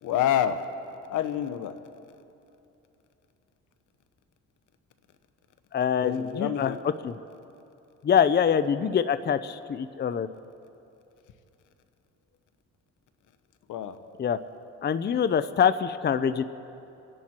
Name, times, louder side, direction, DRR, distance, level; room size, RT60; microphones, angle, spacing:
voice 1, 0.0-0.7 1.1-1.8 6.0-6.8 13.7-14.0, left 10 dB, 80° left, 10 dB, 1.1 m, -27 dB
voice 2, 5.7-6.7 7.0-7.1 8.0-10.3 14.2-14.4 14.8-16.4, left 7 dB, 35° left, 13 dB, 0.6 m, -24 dB
29.5 x 11.0 x 4.4 m, 2.8 s
cardioid pair, 90°, 30 cm